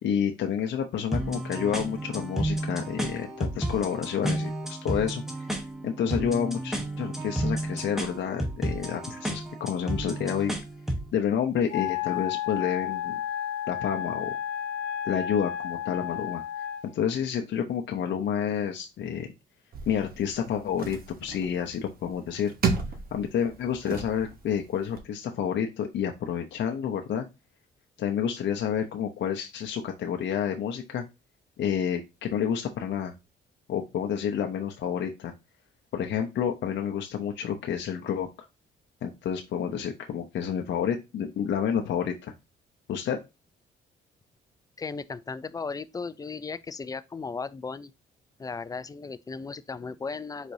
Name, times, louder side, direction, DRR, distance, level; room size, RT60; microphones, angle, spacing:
voice 1, 0.0-5.5 5.8-10.5 11.1-13.2 13.7-14.3 15.0-16.4 16.9-19.3 19.9-22.5 23.1-27.3 28.0-31.0 31.6-33.1 33.7-35.3 35.9-38.3 39.0-42.3 42.9-43.2, left 8 dB, 65° left, 0.7 m, -29 dB
sound 1, 1.1-11.1, right 1 dB, ahead, 1.1 m, -32 dB
Wind instrument woodwind instrument, 11.7-16.9, left 10 dB, 90° left, 1.0 m, -32 dB
sound 2, 19.7-25.0, right 5 dB, 50° right, 1.0 m, -34 dB
voice 2, 44.8-47.9 48.4-50.5, left 4 dB, 20° left, 0.4 m, -36 dB
4.7 x 4.0 x 2.7 m
cardioid pair, 90°, 20 cm